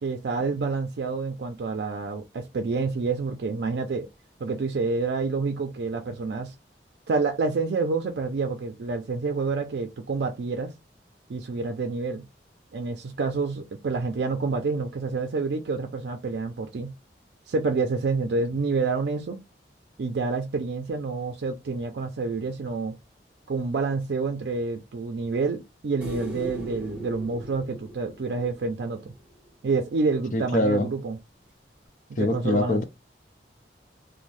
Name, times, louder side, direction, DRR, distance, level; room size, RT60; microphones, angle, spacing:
voice 1, 0.0-4.1 4.4-6.5 7.1-10.7 11.3-12.3 12.7-16.9 17.5-19.4 20.0-23.0 23.5-29.1 29.6-31.2 32.2-32.8, right 4 dB, 70° right, 0.4 m, -28 dB
sound 1, 26.0-29.3 31.9-32.0, equal, 5° right, 0.9 m, -38 dB
voice 2, 30.3-30.9 32.2-32.8, left 1 dB, 45° left, 0.5 m, -24 dB
2.5 x 2.1 x 3.1 m
head